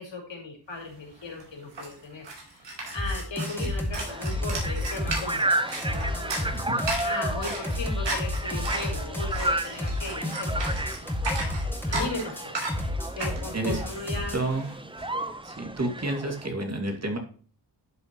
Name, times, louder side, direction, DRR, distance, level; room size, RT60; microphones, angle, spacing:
voice 1, 0.0-5.5 5.9-6.7 7.0-10.6 11.9-12.5 13.2-14.4, left 3 dB, 80° left, 1 dB, 4.4 m, -37 dB
sound 1, 0.9-1.0 1.2-15.0, right 2 dB, 75° right, 4.3 m, -36 dB
sound 2, 3.0-14.4, left 1 dB, 5° left, 2.3 m, -31 dB
sound 3, 4.0-16.5, right 1 dB, 10° right, 0.9 m, -33 dB
voice 2, 6.3-6.8 13.5-13.8 14.3-14.7 15.4-17.2, right 2 dB, 35° right, 3 dB, 2.5 m, -30 dB
11.5 x 7.4 x 3.1 m, 0.42 s
wide cardioid pair, 135°, 44 cm